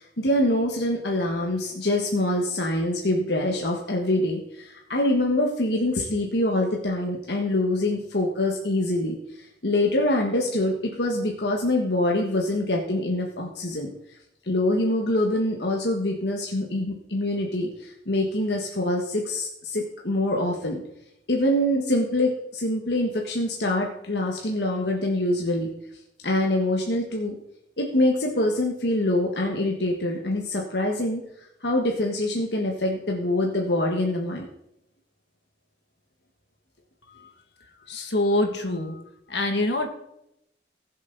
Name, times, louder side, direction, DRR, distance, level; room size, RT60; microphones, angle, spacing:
voice 1, 0.0-14.2 14.4-20.8 21.3-25.7 26.2-27.4 27.8-31.2 31.6-34.5, left 1 dB, 75° left, 0 dB, 1.5 m, -25 dB
voice 2, 37.9-39.0 39.3-39.9, left 1 dB, 90° left, 3 dB, 2.1 m, -24 dB
20.0 x 7.4 x 4.0 m, 0.80 s
head